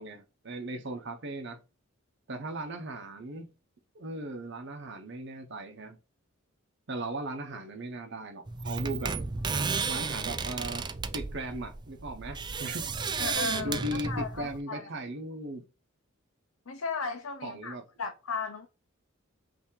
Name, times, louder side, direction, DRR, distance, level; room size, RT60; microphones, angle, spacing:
voice 1, 0.0-1.6 2.3-3.5 3.9-6.0 6.9-9.1 9.9-10.9 11.1-12.8 13.6-15.6 17.4-17.8, right 1 dB, 60° right, 0.8 m, -37 dB
sound 1, 8.5-14.6, right 4 dB, 20° right, 0.4 m, -33 dB
voice 2, 13.2-14.9 16.7-18.7, left 4 dB, 90° left, 0.7 m, -36 dB
5.7 x 2.8 x 3.1 m
head